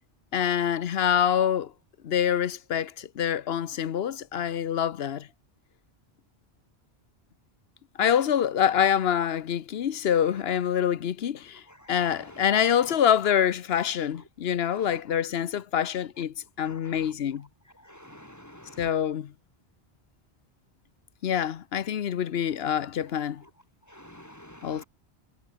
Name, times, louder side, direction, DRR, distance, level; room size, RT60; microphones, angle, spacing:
voice 1, 0.3-1.7 2.0-5.3 8.0-11.6 11.9-17.5 18.8-19.3 21.2-23.4 24.6-24.8, left 9 dB, 70° left, 1.0 m, -26 dB
voice 2, 11.7-12.4 14.7-15.0 16.6-17.1 17.8-18.9 23.9-24.9, equal, 15° left, 4.9 m, -48 dB
omnidirectional pair, 1.1 m